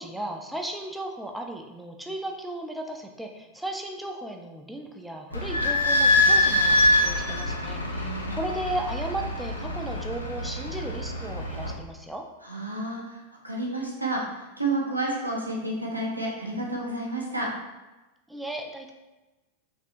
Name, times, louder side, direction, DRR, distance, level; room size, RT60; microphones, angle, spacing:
voice 1, 0.0-12.3 18.3-18.9, right 1 dB, 5° right, 2 dB, 0.3 m, -35 dB
Idling / Squeak, 5.3-11.7, left 1 dB, 80° left, 0.4 m, -24 dB
voice 2, 7.9-8.3 12.4-17.5, right 2 dB, 85° right, -3 dB, 0.6 m, -30 dB
3.3 x 2.7 x 2.5 m, 1.1 s
figure-of-eight pair, 90°, 0 cm